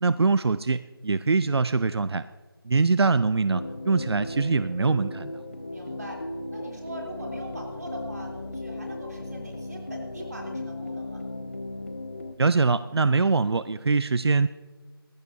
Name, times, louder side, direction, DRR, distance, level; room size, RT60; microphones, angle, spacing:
voice 1, 0.0-2.3 2.6-5.3 12.4-14.5, right 4 dB, 90° right, 14 dB, 0.5 m, -23 dB
sound 1, 3.5-12.3, left 2 dB, 30° left, 0.6 m, -36 dB
voice 2, 5.7-6.2 6.5-11.3, right 1 dB, 45° right, -1 dB, 3.4 m, -41 dB
19.0 x 15.5 x 2.8 m, 1.4 s
figure-of-eight pair, 180°, 13 cm